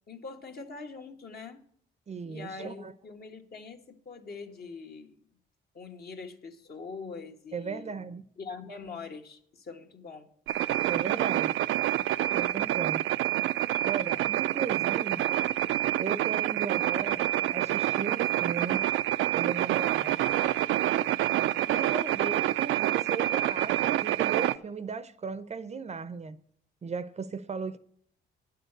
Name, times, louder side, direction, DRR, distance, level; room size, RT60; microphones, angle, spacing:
voice 1, 0.1-1.6 2.2-5.2 5.7-8.0 8.4-10.3, left 4 dB, 50° left, 1.5 m, -43 dB
voice 2, 2.1-2.9 7.5-8.2 10.9-11.6 12.3-13.1 13.8-15.2 16.0-17.2 17.5-18.9 19.3-20.2 21.7-26.4 26.8-27.8, right 5 dB, 35° right, 0.6 m, -36 dB
sound 1, 10.5-24.6, right 14 dB, 85° right, 0.5 m, -27 dB
9.8 x 6.6 x 7.9 m
cardioid pair, 90°, 20 cm